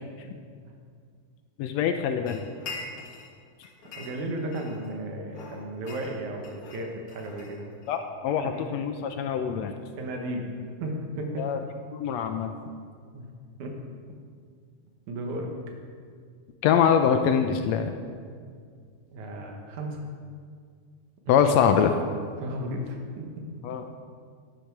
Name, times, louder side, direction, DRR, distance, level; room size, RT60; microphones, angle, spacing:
voice 1, 1.6-2.4 7.9-9.7 11.4-11.6 11.9-12.5 16.6-17.9 21.3-22.0 23.6-23.8, left 7 dB, 80° left, 6 dB, 1.6 m, -24 dB
sound 1, 2.3-3.3 3.6-4.9 5.3-8.0, left 4 dB, 50° left, 2.4 m, -43 dB
voice 2, 4.0-7.8 8.4-8.6 10.0-11.4 13.1-13.3 13.6-13.7 15.1-15.5 19.1-20.1 21.3-21.4 22.4-23.2, right 1 dB, 80° right, 2 dB, 2.6 m, -34 dB
11.0 x 10.5 x 4.6 m, 2.1 s
omnidirectional pair, 3.4 m